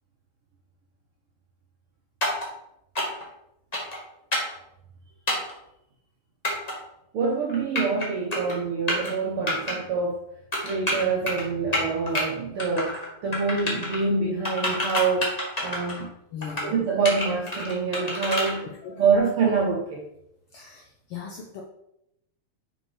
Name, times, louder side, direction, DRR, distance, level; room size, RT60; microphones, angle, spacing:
sound 1, 2.2-2.5 2.9-3.2 3.7-4.0 4.3-4.5 5.3-5.5 6.4-6.7 7.5-8.0 8.3-8.5 8.9-9.1 9.5-9.7 10.5-11.4 11.7-12.2 12.6-13.1 13.3-14.0 14.4-16.0 16.4-16.7 17.0-18.5, left 1 dB, 30° left, 0.7 m, -28 dB
voice 1, 7.1-10.2 10.6-16.1 16.6-20.1, right 4 dB, 70° right, -1 dB, 1.3 m, -26 dB
voice 2, 16.3-16.8 18.8-19.1 20.5-21.6, left 6 dB, 75° left, -1 dB, 1.3 m, -39 dB
6.4 x 4.7 x 4.7 m, 0.82 s
omnidirectional pair, 3.4 m